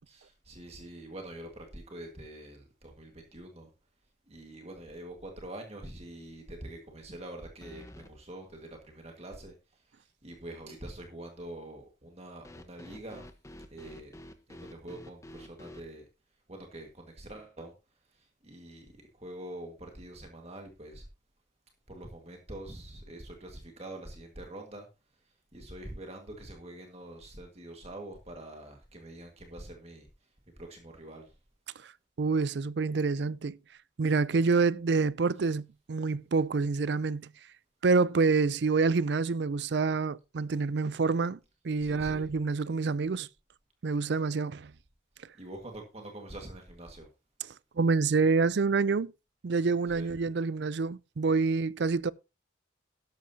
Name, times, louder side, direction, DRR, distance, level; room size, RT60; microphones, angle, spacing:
voice 1, 0.1-3.7 4.3-9.6 10.2-13.3 13.7-14.2 14.5-16.1 16.5-17.7 18.2-21.1 21.9-24.9 25.5-30.1 30.6-31.3 41.8-42.3 45.4-47.1 49.9-50.1, right 1 dB, 35° right, 1.8 m, -45 dB
sound 1, 4.5-5.0 5.3-5.4 7.6-8.1 12.4-15.9, left 1 dB, 15° left, 1.1 m, -49 dB
voice 2, 32.2-33.6 34.0-37.3 37.8-41.4 41.6-43.3 43.8-44.7 47.8-49.1 49.4-52.1, right 4 dB, 65° right, 0.4 m, -27 dB
12.5 x 11.5 x 2.8 m
head